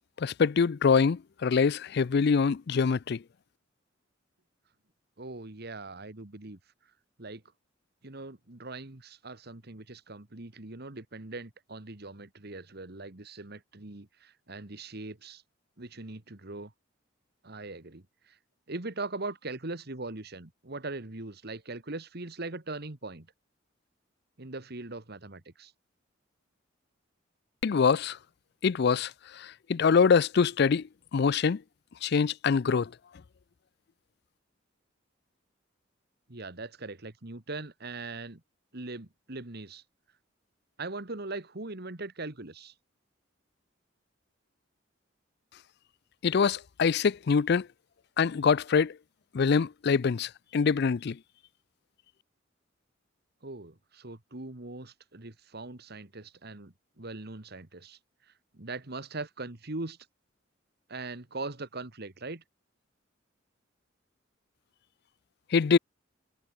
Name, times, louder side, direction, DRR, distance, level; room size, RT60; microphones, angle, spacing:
voice 1, 0.2-3.2 27.6-28.2 28.6-31.6 32.0-32.9 46.2-47.7 48.2-49.0 49.3-51.2 65.5-65.8, left 5 dB, 55° left, 0.4 m, -24 dB
voice 2, 5.2-6.6 7.2-7.4 8.0-15.4 15.8-16.7 17.4-18.4 18.7-23.3 24.4-25.7 36.3-38.4 38.7-39.8 40.8-42.7 53.4-58.0 58.3-60.0 60.9-62.4, right 2 dB, 55° right, 1.9 m, -41 dB
head